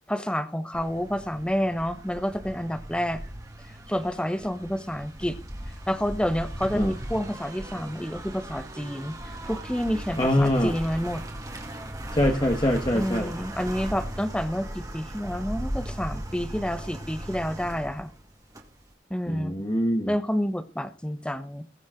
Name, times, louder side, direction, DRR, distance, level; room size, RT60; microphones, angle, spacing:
voice 1, 0.1-3.2 3.9-5.4 5.9-9.1 9.5-11.2 12.9-18.1 19.1-19.7 20.1-21.6, equal, 5° left, 9 dB, 1.1 m, -29 dB
sound 1, 0.7-18.9, right 1 dB, 20° right, 2.3 m, -37 dB
voice 2, 10.2-10.7 12.1-13.3 19.3-20.1, left 1 dB, 25° left, 3 dB, 1.5 m, -24 dB
21.5 x 7.5 x 3.8 m, 0.35 s
head